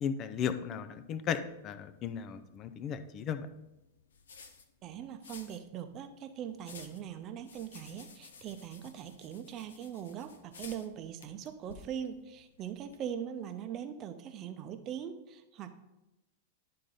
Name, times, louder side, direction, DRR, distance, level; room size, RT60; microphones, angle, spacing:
voice 1, 0.0-3.5, left 8 dB, 35° left, 10 dB, 0.5 m, -35 dB
sound 1, 0.8-13.0, left 5 dB, 75° left, 0.7 m, -56 dB
voice 2, 4.8-15.7, right 9 dB, 35° right, 8 dB, 0.7 m, -41 dB
10.5 x 3.8 x 3.9 m, 0.95 s
figure-of-eight pair, 100°, 0 cm